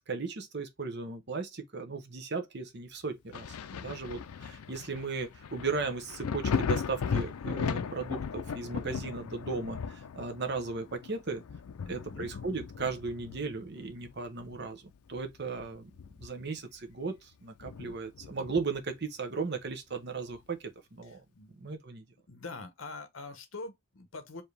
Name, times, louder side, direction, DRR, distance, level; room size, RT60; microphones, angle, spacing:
voice 1, 0.1-11.4 11.9-14.8 15.1-15.9 16.2-20.6 20.9-21.2 21.6-22.0, right 4 dB, 50° right, 0.8 m, -36 dB
Thunder, 3.3-14.7 15.1-16.6 16.9-17.0 17.6-18.9 20.3-20.4, left 6 dB, 90° left, 0.4 m, -37 dB
voice 2, 11.8-12.3 21.0-21.7 22.3-24.4, left 3 dB, 60° left, 1.0 m, -45 dB
4.7 x 2.8 x 3.2 m
head